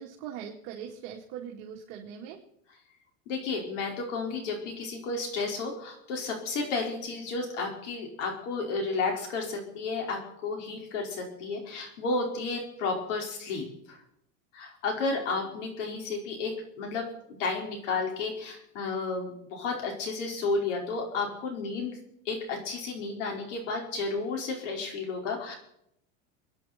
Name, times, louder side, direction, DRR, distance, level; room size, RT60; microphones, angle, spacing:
voice 1, 0.0-2.4, right 8 dB, 45° right, -1 dB, 2.5 m, -41 dB
voice 2, 3.3-14.0 14.5-17.1 17.4-22.0 22.2-25.6, left 3 dB, 70° left, 2 dB, 5.2 m, -32 dB
26.5 x 10.5 x 4.5 m, 0.76 s
supercardioid pair, 160°, 39 cm